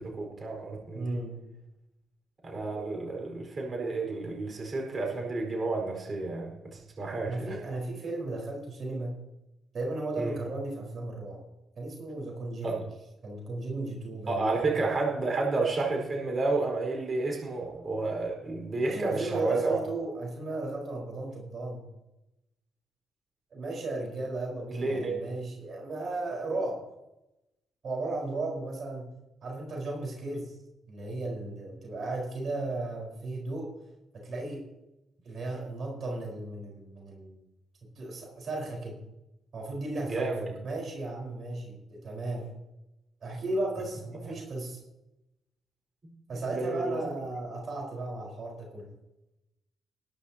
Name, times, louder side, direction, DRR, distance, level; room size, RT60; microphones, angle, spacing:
voice 1, 0.0-1.2 2.4-7.6 10.2-10.4 12.6-12.8 14.3-19.8 24.7-25.1 40.0-40.6 44.2-44.3 46.0-47.1, right 3 dB, 35° right, 0 dB, 4.8 m, -31 dB
voice 2, 0.9-1.4 7.3-9.2 9.7-11.4 11.8-12.8 13.2-14.7 18.8-21.9 23.5-26.8 27.8-29.1 29.4-30.5 30.9-33.7 34.1-34.6 35.2-37.4 37.9-39.0 39.5-42.5 43.2-44.8 46.3-48.9, right 2 dB, 55° right, -1 dB, 4.7 m, -35 dB
21.0 x 11.5 x 2.9 m, 0.94 s
cardioid pair, 90°, 0 cm